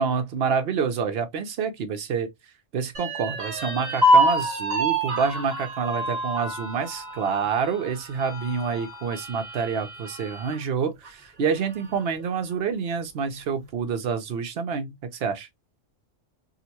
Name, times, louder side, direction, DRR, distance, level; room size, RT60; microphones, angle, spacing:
voice 1, 0.0-2.3 2.7-15.5, right 6 dB, 60° right, 0.9 m, -27 dB
sound 1, 2.9-10.6 11.0-11.1 11.5-12.2, right 1 dB, 35° right, 1.3 m, -26 dB
3.8 x 2.1 x 2.8 m
omnidirectional pair, 1.3 m